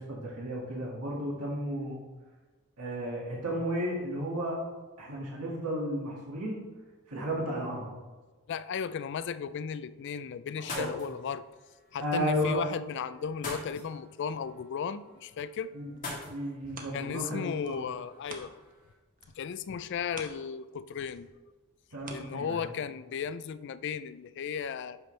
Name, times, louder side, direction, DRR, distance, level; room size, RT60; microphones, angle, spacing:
voice 1, 0.0-2.0 2.8-4.6 5.0-6.6 7.1-7.9 10.6-10.9 12.0-12.6 15.7-15.8 16.3-17.8 21.9-22.7, equal, 85° right, -4 dB, 2.1 m, -33 dB
voice 2, 8.5-11.5 11.9-15.7 16.9-18.5 19.4-21.3 22.1-25.0, left 7 dB, 50° left, 14 dB, 0.3 m, -35 dB
sound 1, 10.5-18.9, left 2 dB, 35° left, 2.8 m, -46 dB
sound 2, 15.9-18.9 19.2-23.0 23.5-23.6, right 3 dB, 40° right, 0.9 m, -50 dB
10.5 x 6.0 x 3.3 m, 1.3 s
head